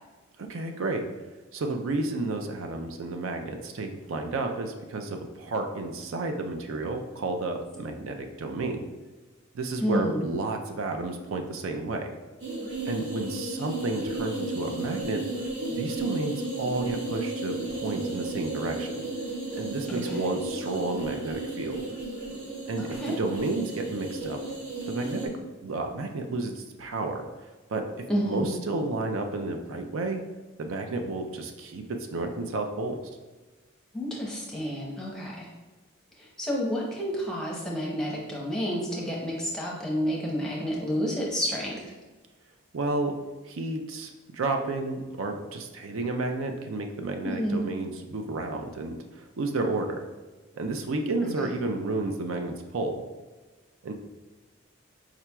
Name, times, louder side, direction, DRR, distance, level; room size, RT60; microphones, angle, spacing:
voice 1, 0.4-1.0 1.5-8.8 9.5-12.1 12.8-15.2 15.7-19.0 19.6-21.8 22.7-24.4 24.9-27.3 27.7-27.9 28.2-30.2 30.6-31.8 32.1-33.0 42.7-43.2 43.5-50.0 50.5-53.0 53.8-53.9, right 2 dB, 75° right, 5 dB, 0.4 m, -31 dB
voice 2, 9.8-10.3 19.9-20.3 22.8-23.2 28.1-28.6 33.9-35.5 36.2-41.8 47.2-47.7 51.2-51.3, equal, 5° left, -4 dB, 0.8 m, -30 dB
sound 1, 12.4-25.3, right 2 dB, 55° right, 1.1 m, -34 dB
4.8 x 4.3 x 2.3 m, 1.3 s
head